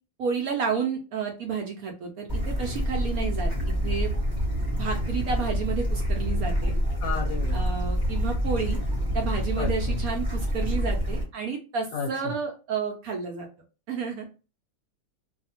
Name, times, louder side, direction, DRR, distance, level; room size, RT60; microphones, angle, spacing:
voice 1, 0.2-4.1 4.7-6.8 7.5-8.8 9.1-13.5 13.9-14.3, right 5 dB, 70° right, 0.9 m, -31 dB
Bird / Stream, 2.3-11.2, equal, 15° right, 0.8 m, -27 dB
voice 2, 7.0-7.7 9.6-10.0 11.9-12.1, left 6 dB, 65° left, 1.0 m, -32 dB
2.7 x 2.4 x 2.8 m
omnidirectional pair, 1.9 m